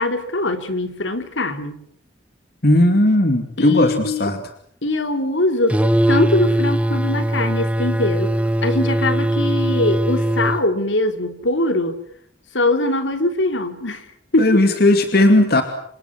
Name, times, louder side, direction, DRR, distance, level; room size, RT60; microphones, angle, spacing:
voice 1, 0.0-1.8 3.6-4.3 4.8-5.8 6.1-8.3 8.6-12.0 12.5-14.1 14.3-14.7, left 2 dB, 85° left, 8 dB, 3.5 m, -22 dB
voice 2, 2.6-4.4 14.4-15.6, left 1 dB, 55° left, 7 dB, 2.6 m, -16 dB
sound 1, 5.7-10.6, right 1 dB, 5° right, 1.1 m, -20 dB
29.0 x 25.5 x 6.1 m, 0.65 s
head